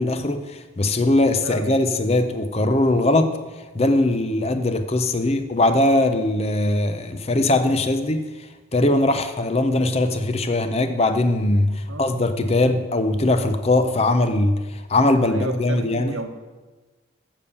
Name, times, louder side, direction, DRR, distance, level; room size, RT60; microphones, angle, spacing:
voice 1, 0.0-3.4 3.7-8.3 8.7-16.1, left 2 dB, 30° left, 9 dB, 0.6 m, -20 dB
voice 2, 15.3-16.3, right 2 dB, 80° right, 6 dB, 1.1 m, -32 dB
7.4 x 7.0 x 6.7 m, 1.2 s
head